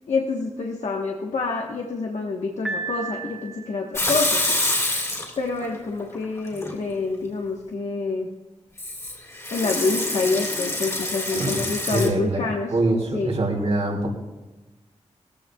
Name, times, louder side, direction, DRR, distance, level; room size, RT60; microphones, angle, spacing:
voice 1, 0.1-4.6 5.4-8.3 9.5-12.7 13.1-13.3, left 4 dB, 80° left, 0 dB, 1.3 m, -27 dB
Piano, 2.7-3.9, right 3 dB, 10° right, 2.1 m, -32 dB
Water tap faucet / Sink (filling or washing) / Liquid, 3.9-5.6 6.0-6.7 8.8-12.1, left 1 dB, 25° left, 2.8 m, -26 dB
voice 2, 11.9-14.1, right 2 dB, 65° right, -1 dB, 3.1 m, -24 dB
20.0 x 15.0 x 2.4 m, 1.1 s
wide cardioid pair, 140°, 12 cm